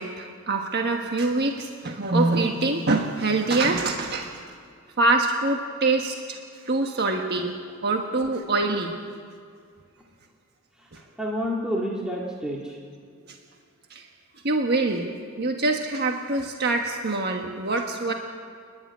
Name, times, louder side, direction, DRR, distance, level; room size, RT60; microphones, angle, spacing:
voice 1, 0.0-4.3 5.0-6.4 6.6-7.6 7.8-9.0 13.9-14.0 14.4-18.1, right 2 dB, 50° right, 3 dB, 1.4 m, -24 dB
voice 2, 10.8-12.8, equal, 5° right, -3 dB, 2.1 m, -29 dB
29.5 x 11.0 x 9.7 m, 2.2 s
head